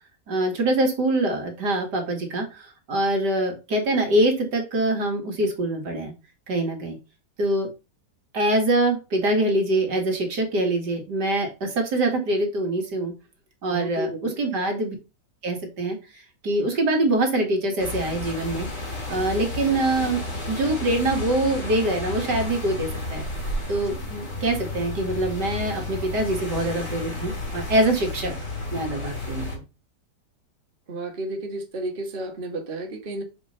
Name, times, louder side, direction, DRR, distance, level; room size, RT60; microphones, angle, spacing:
voice 1, 0.3-6.1 6.5-7.0 7.4-7.7 8.3-13.1 13.6-14.1 14.4-15.0 15.4-16.0 16.4-18.7 19.1-23.3 23.7-28.3 28.7-29.6, right 1 dB, 75° right, 2.6 m, -24 dB
voice 2, 13.7-14.3 30.9-33.2, right 1 dB, 35° right, 1.5 m, -32 dB
sound 1, 17.8-29.6, left 2 dB, 45° left, 3.7 m, -32 dB
6.2 x 5.0 x 5.5 m
omnidirectional pair, 1.8 m